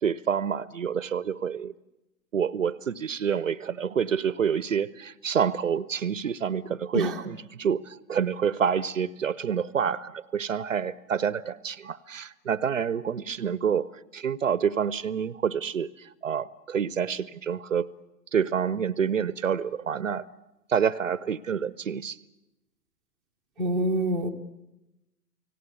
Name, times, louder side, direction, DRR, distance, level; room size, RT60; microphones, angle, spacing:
voice 1, 0.0-1.7 2.3-17.9 18.3-20.2 20.7-22.2, right 7 dB, 50° right, 20 dB, 0.8 m, -28 dB
voice 2, 23.6-24.3, right 1 dB, ahead, -5 dB, 0.9 m, -26 dB
30.0 x 18.5 x 8.3 m, 0.95 s
figure-of-eight pair, 130°, 50 cm